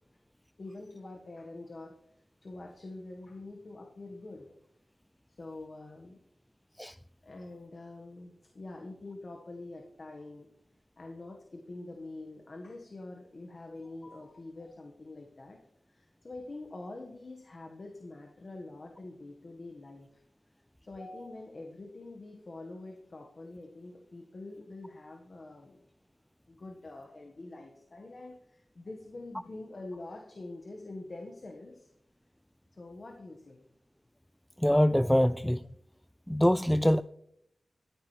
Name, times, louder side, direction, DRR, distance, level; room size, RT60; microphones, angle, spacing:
voice 1, 0.6-1.9 2.4-4.6 5.4-6.2 7.2-10.5 11.0-15.6 15.9-20.2 20.8-25.8 26.5-31.9 32.7-33.6, left 2 dB, 55° left, 1.5 m, -45 dB
voice 2, 34.6-35.6 36.3-37.0, equal, 5° left, 0.3 m, -24 dB
13.5 x 10.0 x 3.3 m
cardioid pair, 50°, 0 cm